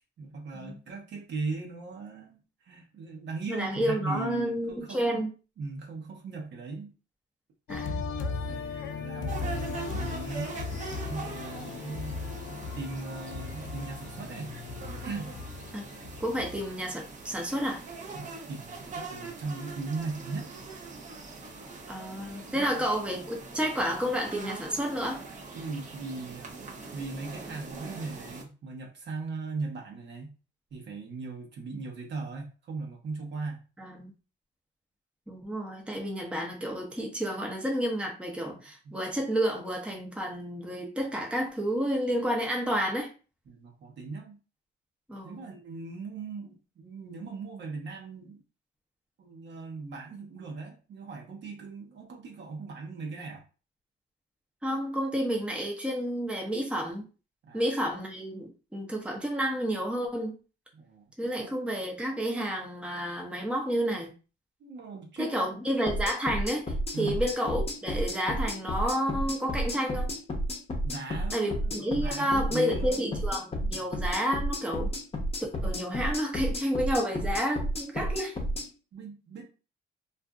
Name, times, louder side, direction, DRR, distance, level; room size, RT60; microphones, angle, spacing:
voice 1, 0.2-5.2 5.6-6.9 8.5-10.6 11.1-12.2 12.5-14.5 15.0-15.3 18.1-20.5 22.5-22.8 25.5-30.3 30.7-33.6 38.8-38.9 43.5-44.4 45.2-48.4 49.2-53.4 57.4-57.7 60.7-61.5 64.6-65.5 66.9-67.2 70.8-73.2 73.7-73.9 78.9-79.4, right 4 dB, 65° right, 0 dB, 1.0 m, -39 dB
voice 2, 3.5-5.3 7.7-8.0 15.7-15.8 16.2-17.8 21.9-25.2 33.8-34.1 35.3-43.1 45.1-45.4 54.6-57.1 57.5-60.3 61.2-64.1 65.2-70.1 71.3-74.9 75.6-78.4, equal, 5° right, 0 dB, 0.7 m, -30 dB
sound 1, 7.7-16.7, left 4 dB, 75° left, 0.4 m, -37 dB
sound 2, 9.3-28.4, right 4 dB, 40° right, 0.7 m, -43 dB
sound 3, 65.9-78.7, equal, 30° left, 0.8 m, -31 dB
2.5 x 2.5 x 2.3 m, 0.35 s
cardioid pair, 90°, 20 cm